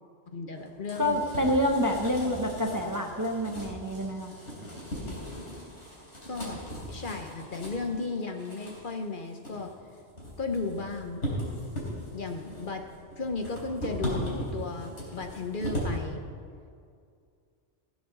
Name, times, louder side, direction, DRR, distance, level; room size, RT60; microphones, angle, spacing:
voice 1, 0.3-1.2 6.3-9.7 10.4-11.2 12.1-12.8 13.2-16.2, left 3 dB, 50° left, 5 dB, 1.0 m, -35 dB
sound 1, 0.5-16.0, equal, 80° left, 3.9 m, -38 dB
voice 2, 1.0-4.3, equal, 20° right, 3 dB, 0.8 m, -27 dB
16.5 x 7.2 x 6.5 m, 2.3 s
omnidirectional pair, 1.2 m